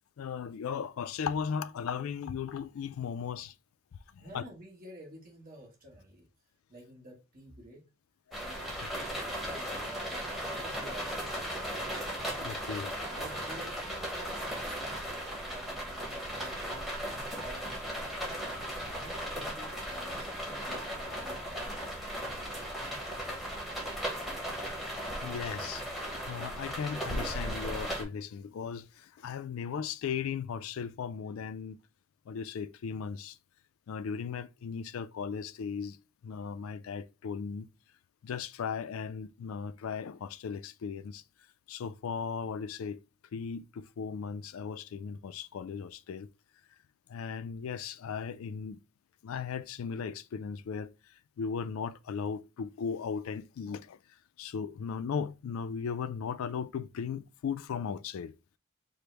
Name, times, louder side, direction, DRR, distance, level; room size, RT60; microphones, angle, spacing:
voice 1, 0.2-3.5 4.1-4.4 12.4-12.9 25.2-25.8 26.3-31.8 32.3-33.4 33.9-36.0 36.2-37.7 38.2-41.2 41.7-43.0 43.3-46.3 47.1-48.8 49.2-50.9 51.4-54.0 54.4-58.3, left 6 dB, 80° left, 0.3 m, -37 dB
voice 2, 4.2-6.3 6.7-7.8 8.4-8.6 8.9-11.7 13.1-16.9 17.4-18.4 18.7-23.5, right 1 dB, 40° right, 1.3 m, -51 dB
sound 1, 8.3-28.0, equal, ahead, 1.0 m, -37 dB
5.1 x 2.1 x 4.4 m
head